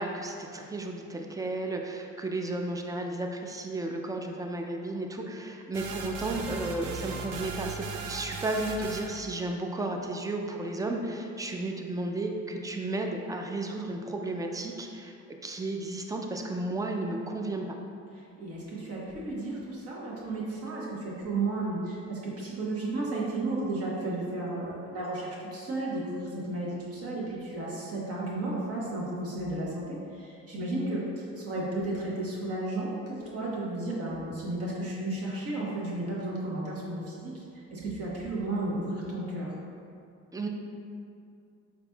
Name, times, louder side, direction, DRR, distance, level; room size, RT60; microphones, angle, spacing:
voice 1, 0.0-15.1 15.4-17.6 40.3-40.5, right 2 dB, 10° right, 2 dB, 0.3 m, -33 dB
sound 1, 5.7-9.2, right 5 dB, 75° right, 0.5 m, -38 dB
voice 2, 18.1-39.5, right 2 dB, 50° right, -5 dB, 1.1 m, -33 dB
4.1 x 4.1 x 2.3 m, 2.4 s
cardioid pair, 90°, 30 cm